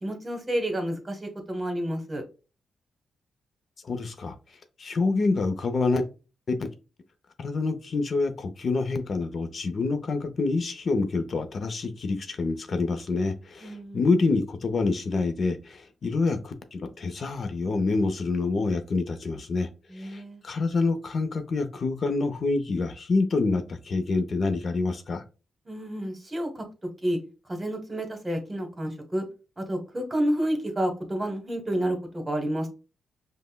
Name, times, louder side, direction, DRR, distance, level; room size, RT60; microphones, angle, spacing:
voice 1, 0.0-2.2 13.6-14.0 19.9-20.4 25.7-26.6 27.0-27.2 27.5-29.2 29.6-32.7, right 1 dB, 25° right, 1.1 m, -30 dB
voice 2, 3.8-4.3 4.8-6.0 6.5-6.7 7.4-19.7 19.9-25.2, left 3 dB, 50° left, 0.5 m, -27 dB
5.2 x 2.1 x 2.2 m
cardioid pair, 85°, 0 cm